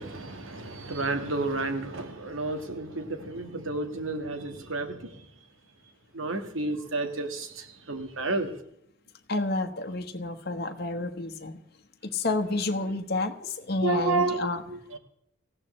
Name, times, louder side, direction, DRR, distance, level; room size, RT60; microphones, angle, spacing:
voice 1, 0.0-5.1 6.1-8.5 13.8-15.0, right 3 dB, 80° right, 1.8 m, -31 dB
voice 2, 9.3-11.6 12.1-14.6, left 2 dB, 50° left, 1.3 m, -30 dB
19.0 x 15.5 x 3.2 m
head